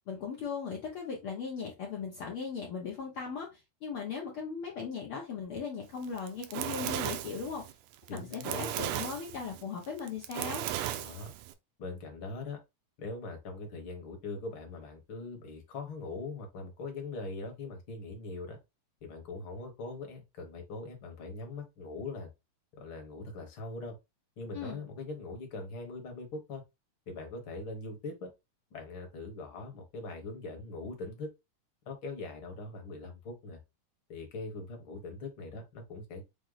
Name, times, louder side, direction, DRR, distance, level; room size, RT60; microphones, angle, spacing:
voice 1, 0.0-7.7 8.1-10.6 24.5-24.8, left 6 dB, 85° left, 1.2 m, -38 dB
Fire, 6.0-11.5, right 12 dB, 80° right, 2.0 m, -36 dB
voice 2, 8.1-8.8 10.9-11.3 11.8-12.6 13.0-18.6 19.0-22.3 22.8-23.9 24.4-26.6 27.1-28.3 28.7-31.3 31.8-33.6 34.1-36.2, left 3 dB, 55° left, 1.5 m, -41 dB
6.2 x 2.1 x 3.9 m
omnidirectional pair, 3.8 m